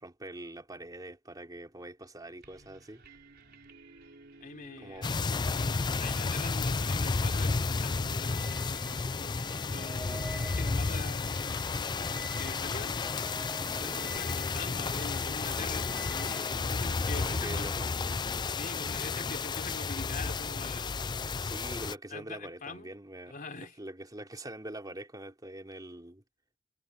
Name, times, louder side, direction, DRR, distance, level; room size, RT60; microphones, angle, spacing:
voice 1, 0.0-3.0 4.8-5.1 13.7-14.0 15.7-15.9 17.0-17.9 21.4-26.2, right 1 dB, 20° right, 3.2 m, -44 dB
sound 1, 2.4-21.1, right 3 dB, 55° right, 4.4 m, -56 dB
voice 2, 4.4-5.1 5.5-11.7 12.4-13.0 13.8-17.7 18.5-21.0 22.1-22.9 23.3-23.7, left 3 dB, 45° left, 3.5 m, -44 dB
sound 2, 5.0-21.9, left 4 dB, 20° left, 0.4 m, -32 dB
sound 3, 7.5-16.8, equal, 5° right, 4.5 m, -49 dB
head